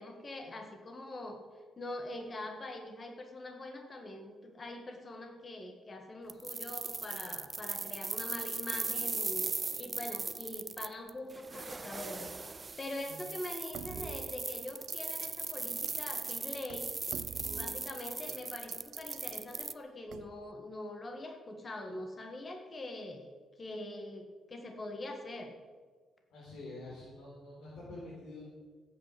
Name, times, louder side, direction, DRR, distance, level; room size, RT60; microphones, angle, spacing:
voice 1, 0.0-1.4 1.8-9.5 9.8-16.9 17.5-23.3 23.6-25.5, left 1 dB, 30° left, 4 dB, 1.9 m, -43 dB
sound 1, 6.3-19.7, right 3 dB, 25° right, 0.5 m, -38 dB
sound 2, 13.7-15.0 15.2-15.5 15.9-16.0 16.3-16.4 16.7-18.4 18.7-19.5 20.1-20.5, right 8 dB, 75° right, 0.7 m, -47 dB
voice 2, 26.3-28.4, left 2 dB, 75° left, -5 dB, 4.7 m, -47 dB
15.5 x 8.4 x 7.8 m, 1.5 s
cardioid pair, 130°, 0 cm